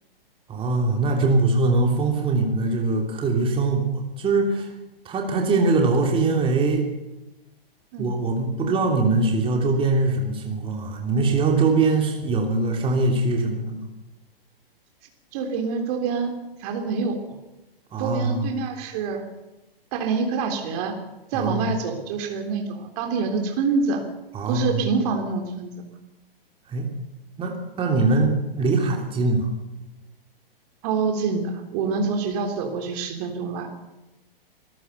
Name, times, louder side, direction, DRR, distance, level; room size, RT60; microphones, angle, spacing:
voice 1, 0.5-4.7 5.0-6.9 8.0-13.8 17.9-18.5 21.3-21.7 24.3-24.8 26.7-26.9 27.4-29.5, right 3 dB, 20° right, 2 dB, 3.2 m, -22 dB
voice 2, 15.3-16.3 16.6-17.2 18.0-19.2 19.9-21.0 21.3-24.0 24.5-25.7 30.8-33.7, right 5 dB, 40° right, 4 dB, 3.5 m, -26 dB
25.0 x 16.0 x 6.9 m, 0.99 s
figure-of-eight pair, 120°, 29 cm